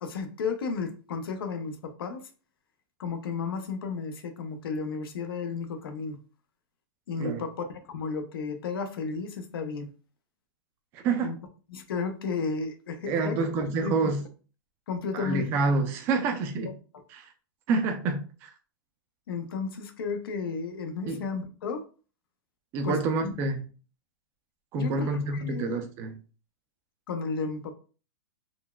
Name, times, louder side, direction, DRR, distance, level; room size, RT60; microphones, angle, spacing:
voice 1, 0.0-2.2 3.0-6.2 7.1-9.9 11.2-11.4 11.7-13.4 13.8-14.1 14.9-15.5 19.3-21.8 22.8-23.0 23.2-23.3 24.7-25.8 27.1-27.7, left 5 dB, 85° left, 0.6 m, -33 dB
voice 2, 10.9-11.3 13.1-14.2 15.1-16.8 17.1-17.3 17.7-18.5 21.1-21.2 22.7-23.6 24.7-26.2, right 3 dB, 20° right, 0.4 m, -28 dB
3.9 x 2.2 x 2.2 m
supercardioid pair, 170°, 12 cm